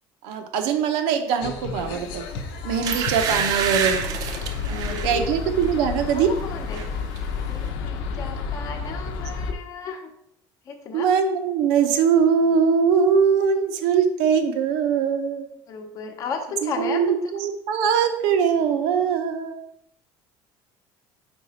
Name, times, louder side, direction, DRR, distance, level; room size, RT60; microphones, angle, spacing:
voice 1, 0.2-2.2 2.6-4.0 4.7-6.3 10.9-15.5 16.6-19.6, right 7 dB, 85° right, 6 dB, 0.8 m, -22 dB
sound 1, 1.4-9.5, left 5 dB, 85° left, 0.8 m, -31 dB
sound 2, 2.1-2.3 2.8-5.1 5.6-5.8 6.2-6.9 7.2-7.3, right 7 dB, 45° right, 0.5 m, -27 dB
voice 2, 4.7-5.3 6.1-7.0 7.5-10.1 10.7-11.1 15.7-17.2, left 4 dB, 40° left, 5 dB, 0.8 m, -34 dB
4.9 x 4.5 x 4.3 m, 0.75 s
cardioid pair, 175°, 9 cm